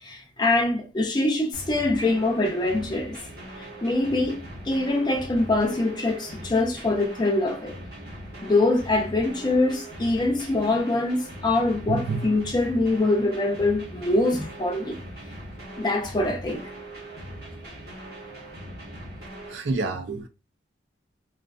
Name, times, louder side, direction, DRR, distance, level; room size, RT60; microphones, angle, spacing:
voice 1, 0.0-3.2 3.6-7.7 8.4-15.0 15.8-16.7, left 2 dB, 25° left, 0.4 m, -24 dB
sound 1, 1.5-19.5, right 1 dB, 60° right, 0.9 m, -40 dB
voice 2, 11.9-12.3 19.5-20.3, right 3 dB, 80° right, 0.5 m, -28 dB
2.4 x 2.3 x 2.3 m
head